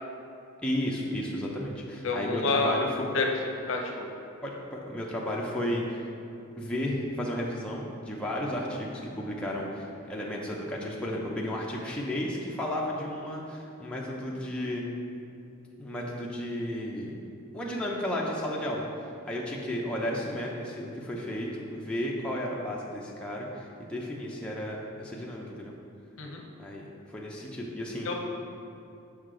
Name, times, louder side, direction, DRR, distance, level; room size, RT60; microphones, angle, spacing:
voice 1, 0.6-3.1 4.4-6.1 6.6-14.8 15.8-17.1 17.5-18.9 19.2-25.7 26.6-28.1, left 1 dB, 5° left, -4 dB, 0.5 m, -33 dB
voice 2, 2.0-2.7 3.1-3.3 3.7-3.9 26.2-26.4 28.0-28.1, left 3 dB, 60° left, 1 dB, 0.7 m, -27 dB
6.4 x 5.6 x 3.8 m, 2.7 s
head